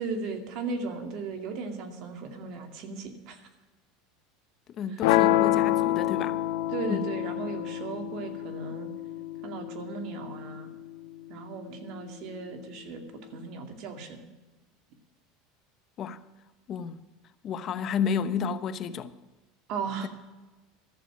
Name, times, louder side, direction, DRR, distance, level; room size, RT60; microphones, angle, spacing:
voice 1, 0.0-3.5 4.9-5.0 6.7-8.9 9.4-10.7 11.3-13.0 13.3-14.3 19.7-20.1, right 4 dB, 55° right, 2.3 m, -36 dB
voice 2, 4.7-6.4 6.9-7.0 16.0-16.2 16.7-17.0 17.4-19.1, left 7 dB, 40° left, 0.8 m, -31 dB
sound 1, 5.0-11.1, left 14 dB, 75° left, 0.7 m, -27 dB
13.5 x 7.0 x 10.0 m
supercardioid pair, 130°, 0 cm